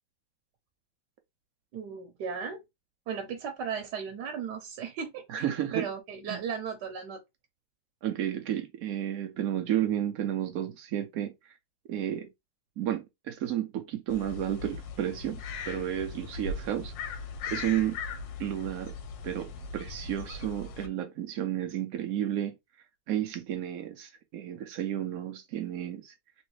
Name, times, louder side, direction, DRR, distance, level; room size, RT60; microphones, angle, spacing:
voice 1, 1.7-2.6 3.1-5.5 5.7-7.2, right 6 dB, 65° right, 1.2 m, -36 dB
voice 2, 5.3-5.9 6.3-6.4 8.0-11.3 11.9-12.3 12.8-16.9 17.5-18.0 18.4-18.9 19.2-22.5 23.1-26.1, right 11 dB, 85° right, 0.7 m, -32 dB
sound 1, 14.1-20.9, left 4 dB, 75° left, 1.3 m, -39 dB
3.1 x 3.1 x 3.1 m
omnidirectional pair, 2.2 m